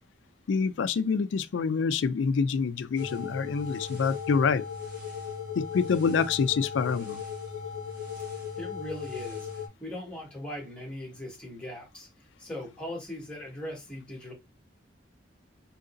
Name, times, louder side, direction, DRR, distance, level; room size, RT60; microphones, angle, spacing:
voice 1, 0.5-4.6 5.6-7.2, left 5 dB, 80° left, 0.4 m, -26 dB
sound 1, 3.0-9.7, left 7 dB, 50° right, 1.3 m, -37 dB
voice 2, 8.6-12.1 12.4-14.3, left 1 dB, 5° left, 1.5 m, -39 dB
3.8 x 2.9 x 2.6 m
head